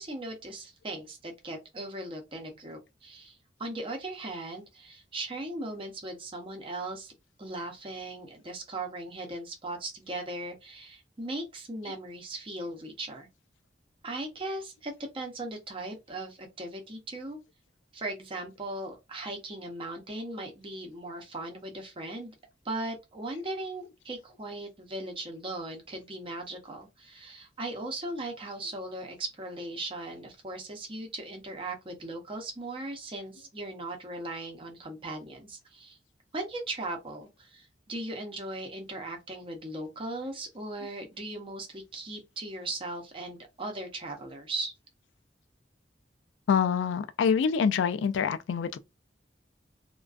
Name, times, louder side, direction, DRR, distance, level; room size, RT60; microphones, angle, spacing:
voice 1, 0.0-7.1 7.4-13.3 14.0-17.4 17.9-22.3 22.6-36.0 36.3-44.7, right 2 dB, 30° right, 0.6 m, -38 dB
voice 2, 46.5-48.8, left 6 dB, 85° left, 0.3 m, -26 dB
2.4 x 2.2 x 2.3 m
head